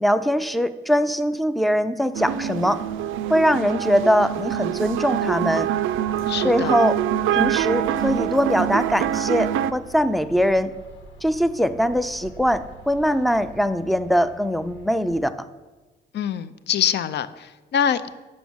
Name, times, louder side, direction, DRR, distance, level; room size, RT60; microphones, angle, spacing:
voice 1, 0.0-2.8 3.3-5.7 6.4-7.0 7.3-10.7 11.2-15.5, equal, ahead, 12 dB, 0.4 m, -22 dB
sound 1, 2.1-9.7, right 11 dB, 85° right, 0.4 m, -25 dB
sound 2, 4.8-15.2, right 2 dB, 75° left, 1.5 m, -46 dB
voice 2, 6.3-6.8 16.1-18.1, left 8 dB, 60° left, 13 dB, 0.5 m, -24 dB
6.9 x 6.4 x 6.1 m, 1.2 s
cardioid pair, 90°, 20 cm